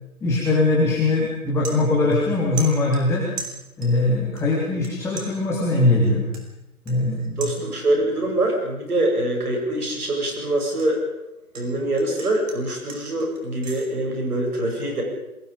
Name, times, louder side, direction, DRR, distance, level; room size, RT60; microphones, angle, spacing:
voice 1, 0.2-3.3 3.8-6.3 6.8-7.5, left 2 dB, 5° left, -5 dB, 3.3 m, -21 dB
sound 1, 1.6-2.3 2.6-4.1 4.4-4.9 5.2-8.1 8.5-8.8 9.2-11.7 12.0-13.9, right 5 dB, 60° right, 6.1 m, -39 dB
voice 2, 7.4-11.0 11.5-15.0, right 1 dB, 80° right, 1 dB, 7.8 m, -24 dB
27.5 x 21.5 x 5.3 m, 0.91 s
figure-of-eight pair, 145°, 44 cm